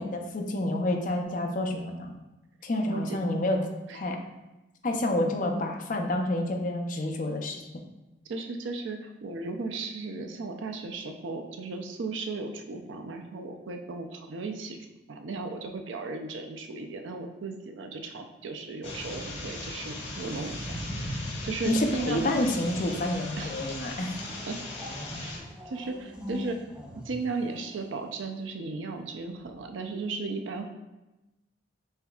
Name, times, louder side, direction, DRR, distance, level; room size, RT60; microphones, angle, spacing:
voice 1, 0.0-2.1 2.6-3.6 3.9-4.2 4.8-7.6 21.7-24.1, left 1 dB, 45° left, 3 dB, 0.5 m, -28 dB
voice 2, 2.9-3.2 3.9-4.0 8.3-14.8 15.1-20.8 21.0-22.3 23.4-23.5 24.5-24.6 25.2-25.3 25.7-26.6 27.0-30.7, right 3 dB, 80° right, 5 dB, 0.5 m, -36 dB
sound 1, 18.8-25.4, left 1 dB, 80° left, 1.4 m, -37 dB
sound 2, 18.8-20.9 22.0-28.4 29.3-29.7, left 1 dB, 5° right, 0.5 m, -46 dB
5.6 x 3.3 x 2.3 m, 1.0 s
head